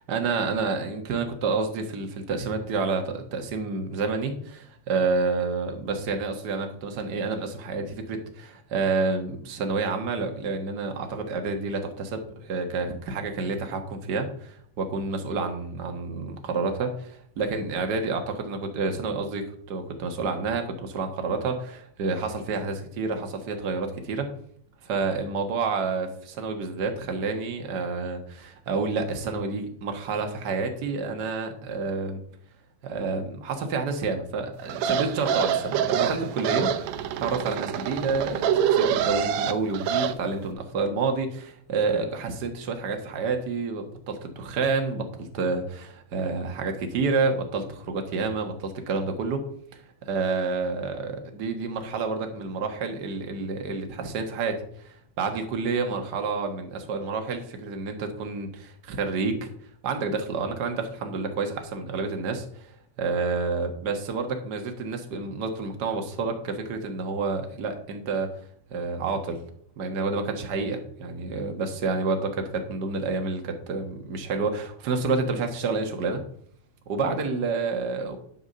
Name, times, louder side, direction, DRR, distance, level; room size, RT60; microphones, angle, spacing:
voice 1, 0.0-24.3 24.8-32.2 32.8-36.7 37.2-49.4 49.7-59.5 59.8-62.7 63.0-68.4 68.7-69.4 69.8-76.2 76.9-78.2, right 4 dB, 45° right, 4 dB, 1.4 m, -29 dB
sound 1, 34.7-40.1, right 8 dB, 75° right, 1.8 m, -26 dB
11.0 x 4.8 x 6.6 m, 0.63 s
omnidirectional pair, 3.4 m